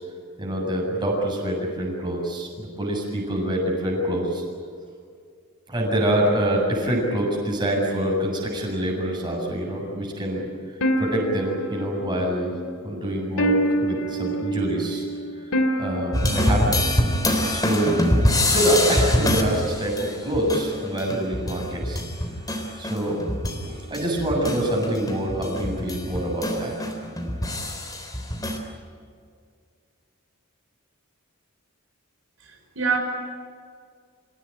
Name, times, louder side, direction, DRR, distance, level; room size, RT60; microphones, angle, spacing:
voice 1, 0.4-4.4 5.7-10.5 11.0-12.5 12.8-15.1 15.8-16.8 17.5-17.9 18.4-22.0 22.8-23.2 23.7-26.7, right 1 dB, 20° right, -1 dB, 7.7 m, -25 dB
sound 1, 10.8-17.9, right 1 dB, 75° left, 2.6 m, -28 dB
sound 2, 16.1-23.7 23.9-28.6, left 1 dB, 20° left, 3.7 m, -25 dB
voice 2, 32.4-33.0, right 5 dB, 70° right, 1 dB, 5.1 m, -26 dB
27.5 x 17.0 x 10.0 m, 2.1 s
head